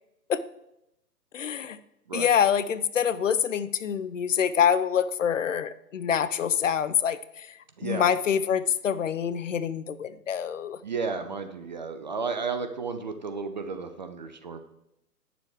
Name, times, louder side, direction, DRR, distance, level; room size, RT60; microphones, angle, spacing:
voice 1, 1.3-1.8 2.1-10.8, left 8 dB, 50° left, 15 dB, 0.6 m, -26 dB
voice 2, 7.8-8.1 10.8-14.6, right 4 dB, 30° right, 7 dB, 0.5 m, -33 dB
8.9 x 6.8 x 4.8 m, 0.85 s
figure-of-eight pair, 135°, 48 cm